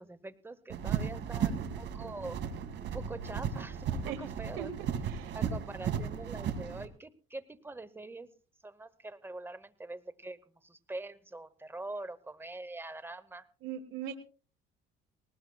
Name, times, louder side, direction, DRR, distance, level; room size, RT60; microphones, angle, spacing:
voice 1, 0.0-2.4 2.8-4.7 5.3-8.3 8.6-13.5, right 2 dB, 10° right, 15 dB, 0.8 m, -44 dB
sound 1, 0.7-6.9, right 7 dB, 60° right, 1.9 m, -35 dB
voice 2, 4.6-5.4 13.6-14.1, right 9 dB, 85° right, 6 dB, 1.5 m, -40 dB
19.0 x 19.0 x 2.3 m, 0.39 s
cardioid pair, 130°, 20 cm